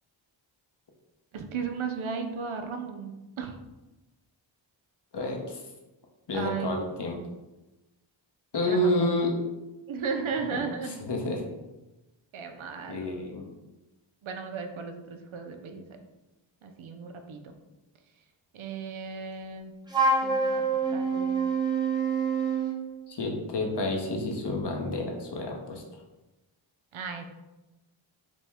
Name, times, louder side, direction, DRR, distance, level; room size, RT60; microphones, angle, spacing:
voice 1, 1.3-3.5 6.3-6.7 8.6-9.1 9.9-11.0 12.3-13.3 14.2-15.9 16.6-17.5 18.5-19.7 20.2-20.6 20.9-21.3 26.9-27.3, right 5 dB, 75° right, 5 dB, 0.6 m, -35 dB
voice 2, 5.1-5.6 6.3-7.2 8.5-9.3 10.5-11.4 12.9-13.5 23.1-25.8, left 1 dB, 55° left, 0 dB, 0.9 m, -29 dB
Wind instrument woodwind instrument, 19.9-22.8, right 4 dB, 10° right, 0.8 m, -26 dB
5.1 x 2.1 x 3.4 m, 1.0 s
wide cardioid pair, 60°, 48 cm